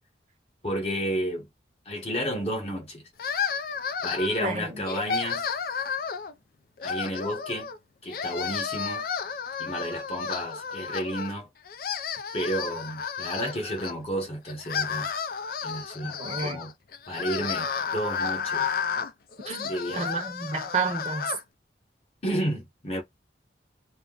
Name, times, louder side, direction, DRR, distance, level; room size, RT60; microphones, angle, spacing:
voice 1, 0.6-1.5 1.9-3.0 4.0-5.5 6.8-7.7 8.0-9.0 9.6-11.5 12.3-15.1 15.6-16.7 17.1-18.7 19.6-20.1 22.2-23.0, equal, 35° left, 1.0 m, -31 dB
sound 1, 3.2-4.5 4.9-6.3 6.8-7.8 8.1-11.3 11.6-13.9 14.5-21.4, left 6 dB, 50° left, 0.4 m, -32 dB
voice 2, 4.4-4.8 16.0-16.6 19.5-19.6 19.9-21.3, right 4 dB, 40° right, 0.9 m, -30 dB
2.4 x 2.1 x 3.8 m
head